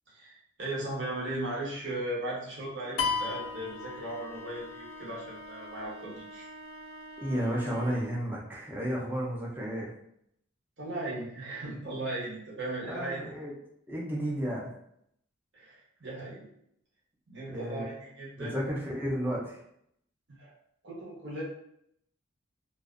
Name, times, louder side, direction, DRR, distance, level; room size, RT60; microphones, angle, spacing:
voice 1, 0.1-6.5 10.8-13.3 15.5-16.5 17.3-18.6 20.3-20.5 20.8-21.4, right 1 dB, 55° right, -5 dB, 0.8 m, -37 dB
sound 1, 2.8-8.2, left 1 dB, 20° left, 0.8 m, -47 dB
sound 2, 3.0-4.7, left 5 dB, 75° left, 0.3 m, -33 dB
voice 2, 7.2-9.9 12.9-13.5 13.9-14.7 17.5-17.9 18.4-19.6, equal, 10° right, -4 dB, 0.4 m, -32 dB
2.4 x 2.1 x 2.4 m, 0.73 s
head